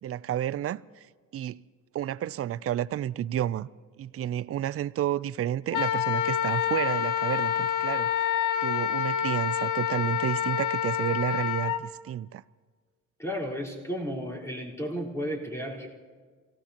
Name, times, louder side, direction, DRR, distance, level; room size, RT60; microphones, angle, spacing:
voice 1, 0.0-1.1 1.3-1.6 1.9-3.7 4.0-8.3 8.6-12.4, right 11 dB, 50° right, 0.4 m, -31 dB
Wind instrument woodwind instrument, 5.7-11.8, left 10 dB, 85° left, 0.9 m, -27 dB
voice 2, 13.2-15.9, equal, 10° left, 4.2 m, -33 dB
28.5 x 17.5 x 2.9 m
cardioid pair, 90°, 30 cm